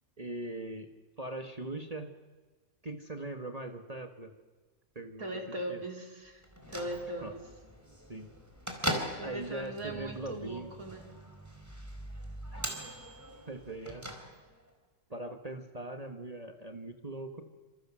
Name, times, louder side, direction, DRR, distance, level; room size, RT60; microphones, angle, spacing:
voice 1, 0.2-0.9 1.2-2.1 2.8-4.3 4.9-5.2 5.7-5.8 7.2-7.3 8.1-8.3 9.2-10.7 12.5-12.6 13.5-14.1 15.1-17.4, right 2 dB, 30° right, 4 dB, 1.7 m, -40 dB
voice 2, 5.2-6.4 6.7-7.4 9.2-11.1, right 1 dB, 85° right, 2 dB, 4.9 m, -39 dB
Bell / Microwave oven, 6.4-14.7, equal, 10° right, 4.4 m, -41 dB
28.5 x 27.0 x 7.6 m, 1.3 s
omnidirectional pair, 1.4 m